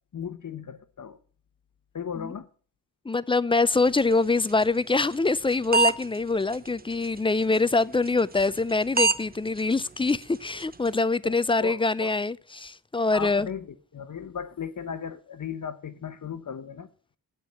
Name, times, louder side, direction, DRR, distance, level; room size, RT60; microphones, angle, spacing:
voice 1, 0.1-1.2 1.9-2.5 11.2-12.2 13.1-16.9, left 7 dB, 50° left, 0.9 m, -36 dB
voice 2, 3.1-13.5, left 3 dB, 15° left, 0.3 m, -24 dB
sound 1, 3.7-11.0, right 4 dB, 20° right, 0.7 m, -32 dB
7.8 x 5.5 x 7.6 m
cardioid pair, 55°, 41 cm